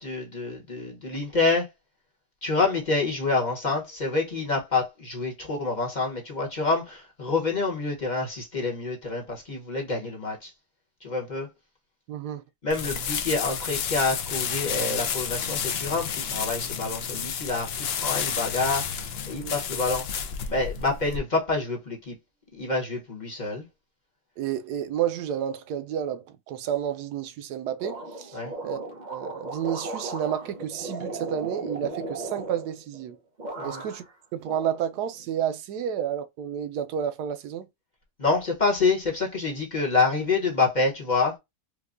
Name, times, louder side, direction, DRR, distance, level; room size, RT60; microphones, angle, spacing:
voice 1, 0.0-1.7 2.4-10.5 11.0-11.5 12.6-19.0 19.3-20.1 20.5-22.1 22.5-23.6 28.3-28.5 33.6-33.8 38.2-41.4, left 3 dB, 35° left, 1.0 m, -27 dB
voice 2, 12.1-12.4 19.4-19.5 24.4-28.8 29.1-33.2 33.6-34.0 34.3-37.7, right 9 dB, 90° right, 1.2 m, -31 dB
sound 1, 12.7-21.2, left 7 dB, 65° left, 0.6 m, -31 dB
sound 2, 27.8-33.1 33.4-34.1 34.4-35.3, right 2 dB, 40° right, 0.6 m, -36 dB
4.6 x 2.2 x 2.5 m
omnidirectional pair, 1.7 m